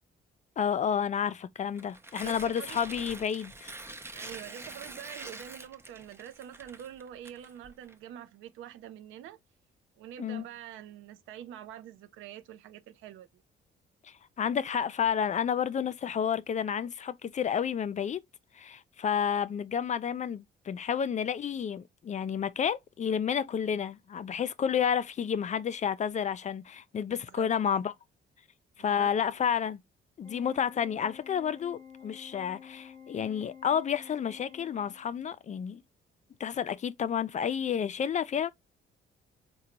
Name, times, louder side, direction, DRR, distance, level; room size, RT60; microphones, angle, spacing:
voice 1, 0.6-3.7 10.2-10.4 14.0-18.2 18.5-27.9 28.8-29.8 30.2-35.8 36.4-38.5, left 8 dB, 40° left, 0.4 m, -30 dB
Tearing, 1.7-7.9, right 2 dB, 10° right, 0.5 m, -45 dB
voice 2, 2.2-2.8 4.1-9.4 10.0-13.4 27.1-27.5 28.8-29.1, right 11 dB, 90° right, 0.5 m, -46 dB
Organ, 30.2-35.3, left 7 dB, 15° left, 0.8 m, -50 dB
3.8 x 2.2 x 2.8 m
cardioid pair, 90°, 20 cm